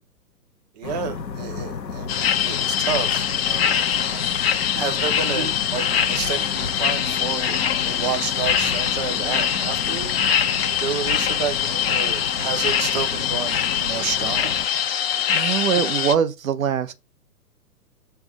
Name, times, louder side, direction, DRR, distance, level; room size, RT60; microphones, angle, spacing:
voice 1, 0.7-4.3 4.7-7.6 7.8-10.2 10.8-14.5, right 7 dB, 25° right, 0.5 m, -30 dB
sound 1, 0.8-14.7, left 5 dB, 80° left, 1.0 m, -33 dB
sound 2, 2.1-16.2, left 9 dB, 35° left, 0.7 m, -23 dB
voice 2, 15.3-16.9, right 8 dB, 55° right, 1.0 m, -22 dB
6.9 x 3.5 x 4.8 m
figure-of-eight pair, 120°, 50 cm